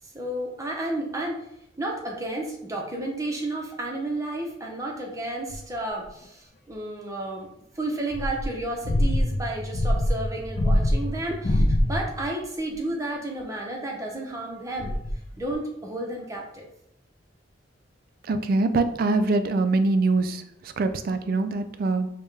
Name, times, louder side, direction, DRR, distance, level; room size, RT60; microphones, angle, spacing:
voice 1, 0.1-1.4 1.8-7.5 7.8-14.9 15.4-16.7, right 1 dB, 15° right, 0 dB, 0.7 m, -32 dB
sound 1, 5.5-5.6 8.1-12.3 14.8-15.5, left 1 dB, 40° left, 0.4 m, -24 dB
voice 2, 18.2-22.1, right 3 dB, 50° right, 9 dB, 0.3 m, -24 dB
5.2 x 2.2 x 3.2 m, 0.77 s
head